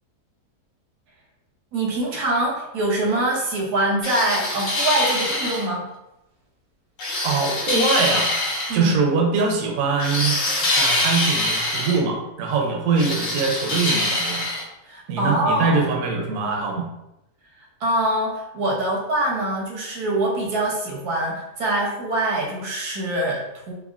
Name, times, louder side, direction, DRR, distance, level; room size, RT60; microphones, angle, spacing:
voice 1, 1.7-5.9 8.7-9.0 14.8-15.8 17.8-23.7, right 1 dB, 90° right, -2 dB, 1.3 m, -24 dB
sound 1, 4.0-5.7 7.0-8.8 10.0-12.0 13.0-14.6, left 1 dB, 65° left, 1.0 m, -24 dB
voice 2, 7.2-8.3 8.7-14.5 15.1-16.9, right 4 dB, 70° right, 0 dB, 1.0 m, -23 dB
3.5 x 2.1 x 2.3 m, 0.88 s
omnidirectional pair, 1.6 m